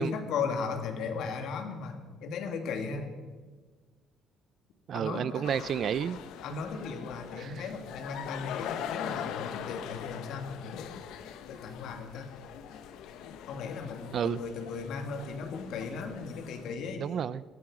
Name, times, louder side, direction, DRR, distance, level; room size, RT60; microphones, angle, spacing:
voice 1, 0.0-3.1 4.9-5.5 6.4-11.0 11.5-12.3 13.5-17.1, left 5 dB, 70° left, 2.1 m, -36 dB
voice 2, 4.9-6.2 7.4-7.6 14.1-14.4 17.0-17.4, right 8 dB, 45° right, 0.4 m, -31 dB
sound 1, 5.4-16.7, left 9 dB, 85° left, 1.0 m, -42 dB
16.5 x 13.5 x 4.9 m
cardioid pair, 155°, 0 cm